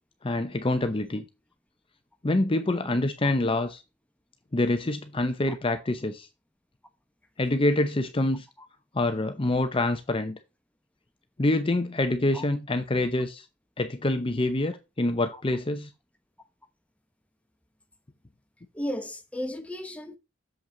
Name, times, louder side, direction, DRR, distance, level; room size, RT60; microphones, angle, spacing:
voice 1, 0.2-1.2 2.2-3.8 4.5-6.3 7.4-8.5 8.9-10.4 11.4-13.5 13.8-15.9, left 2 dB, 30° left, 0.7 m, -26 dB
voice 2, 18.7-20.2, left 1 dB, 5° left, 1.0 m, -34 dB
7.3 x 5.7 x 3.9 m
head